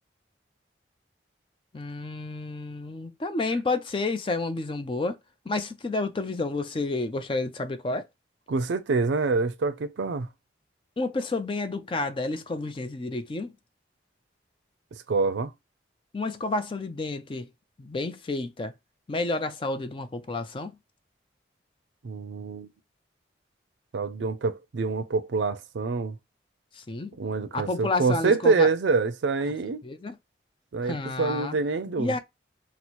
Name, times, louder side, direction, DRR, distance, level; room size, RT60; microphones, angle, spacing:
voice 1, 1.7-5.2 5.5-8.1 11.0-13.5 16.1-17.5 17.8-18.7 19.1-20.7 26.7-27.1 27.5-28.7 29.8-30.1 30.8-31.6 32.0-32.2, left 3 dB, 25° left, 0.3 m, -30 dB
voice 2, 8.5-10.3 14.9-15.5 22.0-22.7 23.9-26.2 27.2-29.8 30.7-32.2, right 4 dB, 75° right, 0.4 m, -26 dB
3.0 x 2.0 x 4.1 m
head